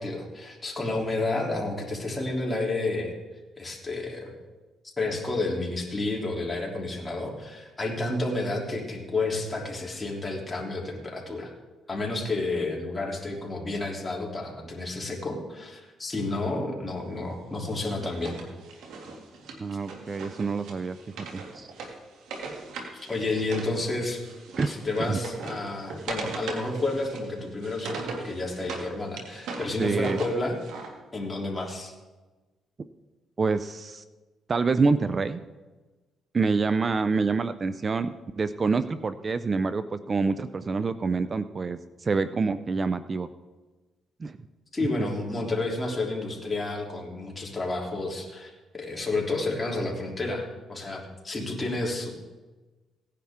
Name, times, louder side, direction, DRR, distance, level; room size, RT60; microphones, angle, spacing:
voice 1, 0.0-3.1 3.6-4.3 4.8-11.5 11.9-18.4 22.9-24.2 24.7-30.6 31.1-31.9 44.7-52.1, left 2 dB, 20° left, -1 dB, 3.1 m, -30 dB
Wood, 17.7-23.7 24.0-28.9 29.2-30.9, right 4 dB, 85° right, 2.2 m, -39 dB
voice 2, 19.6-21.7 24.6-24.7 25.0-25.2 29.8-30.2 33.4-34.0 34.5-35.4 36.3-43.3 44.2-44.4, right 4 dB, 35° right, 12 dB, 0.5 m, -27 dB
17.5 x 10.5 x 3.7 m, 1.2 s
cardioid pair, 90°, 0 cm